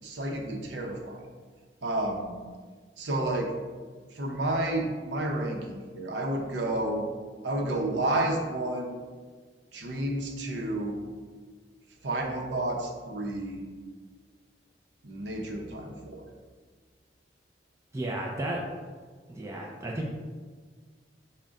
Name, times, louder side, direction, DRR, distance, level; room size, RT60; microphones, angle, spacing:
voice 1, 0.0-1.2 1.8-2.3 3.0-3.5 4.1-7.1 7.4-9.0 9.7-11.0 12.0-13.6 15.0-16.2, right 1 dB, 85° right, 1 dB, 0.7 m, -30 dB
voice 2, 17.9-18.6 19.3-20.1, right 1 dB, 15° right, -2 dB, 0.4 m, -33 dB
5.0 x 2.1 x 3.6 m, 1.5 s
head